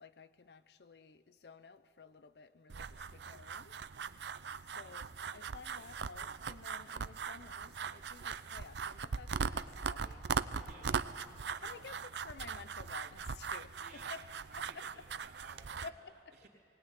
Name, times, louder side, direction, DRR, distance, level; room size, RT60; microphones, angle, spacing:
voice 1, 0.0-4.1 4.7-11.1 11.6-14.2 14.6-15.0 15.8-16.3, left 5 dB, 65° left, 0.6 m, -53 dB
sound 1, 2.7-15.9, right 5 dB, 75° right, 0.6 m, -40 dB
voice 2, 10.6-11.1 11.4-11.9 13.8-15.9 16.3-16.5, right 3 dB, 60° right, 3.3 m, -58 dB
20.0 x 19.0 x 9.2 m
head